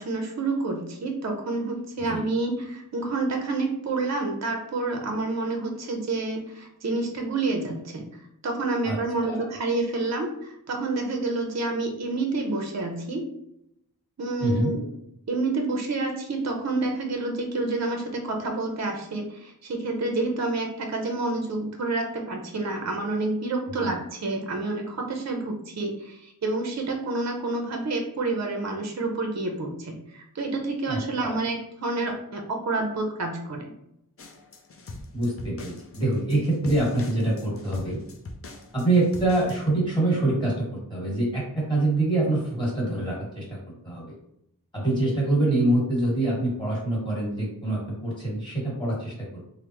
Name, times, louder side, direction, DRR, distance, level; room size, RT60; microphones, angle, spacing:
voice 1, 0.0-13.3 14.2-14.8 15.3-33.7, right 2 dB, 50° right, 3 dB, 0.6 m, -29 dB
voice 2, 14.4-14.7 23.8-24.0 30.9-31.4 35.1-38.0 38.7-43.6 43.8-44.1 44.7-49.4, right 2 dB, 10° left, -5 dB, 1.5 m, -25 dB
sound 1, 34.2-39.7, left 2 dB, 40° left, 0.4 m, -43 dB
3.3 x 2.0 x 2.9 m, 0.79 s
wide cardioid pair, 90°, 36 cm